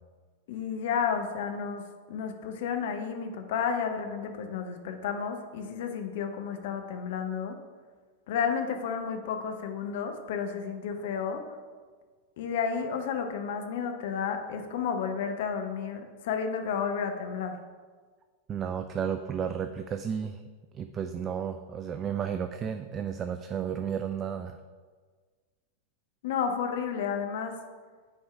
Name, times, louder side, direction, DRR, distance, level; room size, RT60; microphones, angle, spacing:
voice 1, 0.5-1.8 2.1-7.5 8.3-11.4 12.4-17.6 26.2-27.6, left 6 dB, 55° left, 6 dB, 0.8 m, -31 dB
voice 2, 18.5-20.4 20.7-24.6, right 8 dB, 25° right, 8 dB, 0.3 m, -33 dB
9.1 x 4.5 x 3.4 m, 1.5 s
figure-of-eight pair, 90°, 0 cm